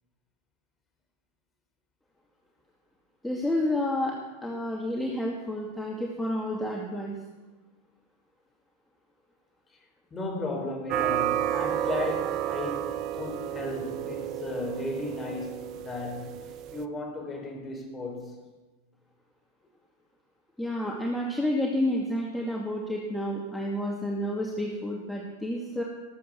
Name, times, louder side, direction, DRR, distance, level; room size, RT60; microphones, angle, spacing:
voice 1, 3.2-7.1 20.6-25.8, left 1 dB, 5° left, 2.2 m, -30 dB
voice 2, 10.1-16.4 16.7-18.4, left 2 dB, 20° left, 4.9 m, -35 dB
sound 1, 10.9-16.8, right 11 dB, 45° right, 0.8 m, -31 dB
18.5 x 8.4 x 7.0 m
hypercardioid pair, 100°, 0 cm